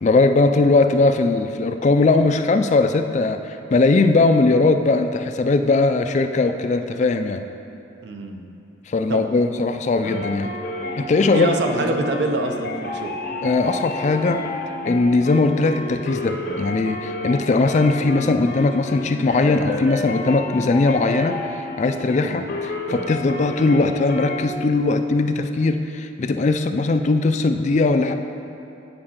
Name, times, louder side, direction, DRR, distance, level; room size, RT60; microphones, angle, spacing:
voice 1, 0.0-7.4 8.9-10.5 11.0-11.6 13.4-14.4 14.8-21.4 21.8-28.1, left 3 dB, 40° left, 8 dB, 0.3 m, -19 dB
voice 2, 8.0-8.4 9.1-9.3 11.3-13.2 22.2-22.5, right 2 dB, 60° right, 4 dB, 0.7 m, -25 dB
sound 1, 10.0-24.5, left 2 dB, 55° left, 0.7 m, -30 dB
8.7 x 4.7 x 5.8 m, 2.9 s
head